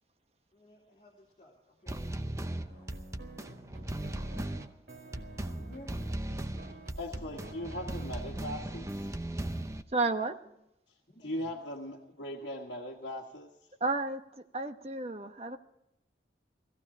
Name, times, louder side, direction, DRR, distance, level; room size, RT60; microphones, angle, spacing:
voice 1, 0.5-2.9 5.0-6.0 11.1-11.5, left 1 dB, 35° left, -3 dB, 2.9 m, -55 dB
sound 1, 1.9-9.8, right 1 dB, 15° right, 0.6 m, -37 dB
sound 2, 2.7-9.1, right 2 dB, 70° right, 2.8 m, -50 dB
voice 2, 6.7-9.1 11.2-13.5, left 1 dB, 75° left, -2 dB, 1.6 m, -40 dB
voice 3, 9.9-10.3 13.8-14.2 14.5-15.6, right 3 dB, 35° right, 6 dB, 1.0 m, -31 dB
18.0 x 15.0 x 4.9 m, 0.82 s
head